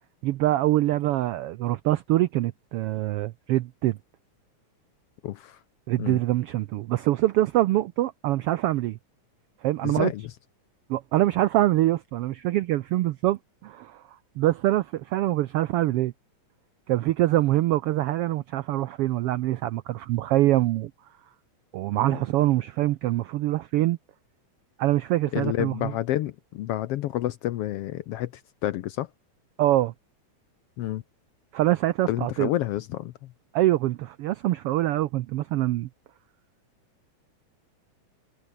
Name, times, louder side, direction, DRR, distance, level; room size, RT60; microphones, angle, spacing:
voice 1, 0.2-4.0 5.9-9.0 9.6-10.1 10.9-14.0 14.4-16.1 16.9-20.9 21.7-24.0 24.8-25.9 29.6-29.9 31.5-32.5 33.5-35.9, right 15 dB, 90° right, 1.3 m, -24 dB
voice 2, 5.2-5.6 6.0-6.2 9.8-10.3 22.1-22.2 25.3-29.1 30.8-31.0 32.1-33.3, left 13 dB, 75° left, 1.4 m, -29 dB
omnidirectional pair, 3.3 m